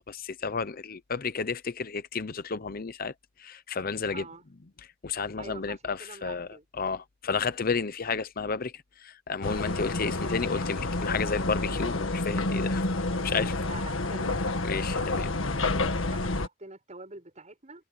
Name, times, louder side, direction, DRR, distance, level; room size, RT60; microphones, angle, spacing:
voice 1, 0.0-4.2 4.8-6.5 6.7-12.9 13.2-13.6 14.6-15.3, left 5 dB, 45° left, 0.7 m, -32 dB
voice 2, 4.1-4.4 5.4-6.7 13.6-14.4 16.0-17.8, right 3 dB, 35° right, 7.1 m, -45 dB
sound 1, 9.4-16.5, left 2 dB, 80° left, 1.7 m, -29 dB
head